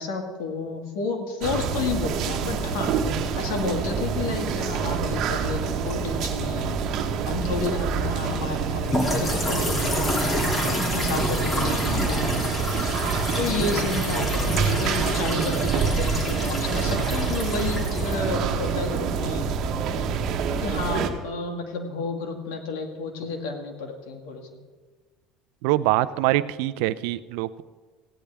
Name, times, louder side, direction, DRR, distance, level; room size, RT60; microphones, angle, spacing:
voice 1, 0.0-6.8 7.3-10.2 10.8-12.2 13.4-19.4 20.6-24.4, left 4 dB, 80° left, 4 dB, 1.9 m, -31 dB
sound 1, 1.4-21.1, right 6 dB, 55° right, 1.2 m, -27 dB
sound 2, 8.9-19.0, left 1 dB, 25° left, 2.5 m, -29 dB
voice 2, 25.6-27.6, right 16 dB, 80° right, 16 dB, 0.4 m, -24 dB
16.0 x 10.0 x 3.4 m, 1.4 s
supercardioid pair, 105°, 0 cm